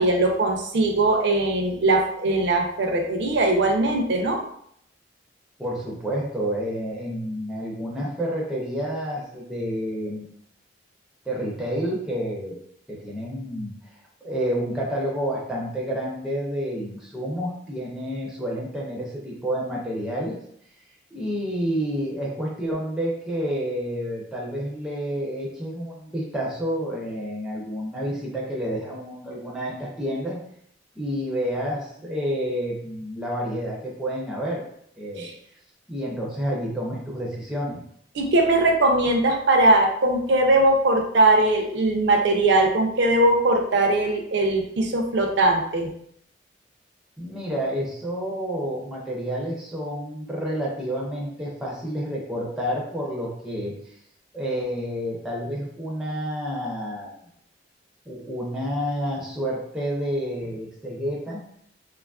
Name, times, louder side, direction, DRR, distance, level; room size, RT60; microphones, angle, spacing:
voice 1, 0.0-4.4 35.2-35.3 38.1-45.9, right 2 dB, 65° right, 2 dB, 0.5 m, -20 dB
voice 2, 5.6-10.4 11.3-12.6 12.9-13.7 14.2-20.4 21.1-30.4 31.0-34.6 35.0-35.3 35.9-37.8 47.2-53.7 54.3-57.1 58.1-61.4, equal, 5° right, -4 dB, 0.4 m, -29 dB
2.8 x 2.3 x 2.3 m, 0.68 s
head